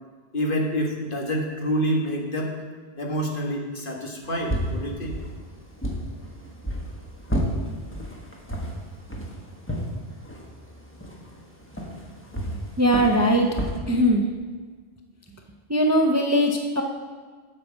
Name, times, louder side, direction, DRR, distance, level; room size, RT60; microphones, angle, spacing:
voice 1, 0.3-2.5 3.0-5.1, equal, 55° left, 0 dB, 1.6 m, -27 dB
sound 1, 4.2-13.8, equal, 10° left, 1.3 m, -32 dB
voice 2, 12.8-13.5 13.9-14.2 15.7-16.8, equal, 20° right, 2 dB, 0.6 m, -20 dB
8.6 x 5.6 x 7.2 m, 1.5 s
omnidirectional pair, 1.1 m